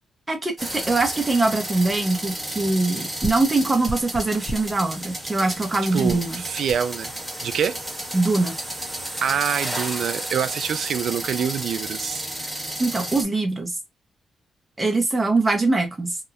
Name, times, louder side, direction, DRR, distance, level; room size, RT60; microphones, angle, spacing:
voice 1, 0.3-6.4 8.1-8.6 12.8-13.8 14.8-16.2, right 2 dB, 20° right, 0.6 m, -22 dB
sound 1, 0.6-13.2, right 1 dB, ahead, 1.0 m, -32 dB
sound 2, 1.4-1.5 1.9-2.0 2.2-2.4 3.2-4.8 5.5-5.7 6.1-6.3 6.7-6.8, equal, 35° left, 0.7 m, -34 dB
voice 2, 5.9-7.1 7.4-7.8 9.2-12.2, right 8 dB, 70° right, 0.4 m, -25 dB
2.8 x 2.0 x 2.4 m
cardioid pair, 120°, 0 cm